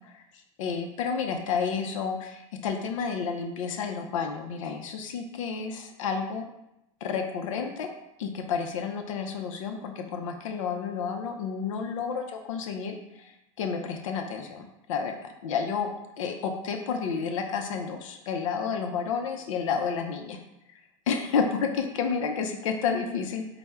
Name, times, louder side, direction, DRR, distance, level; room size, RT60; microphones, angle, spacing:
voice 1, 0.6-6.4 7.0-7.9 8.2-13.3 13.6-15.2 15.4-20.4 21.1-23.4, left 6 dB, 85° left, 4 dB, 0.4 m, -30 dB
4.2 x 2.0 x 3.4 m, 0.86 s
hypercardioid pair, 100°, 16 cm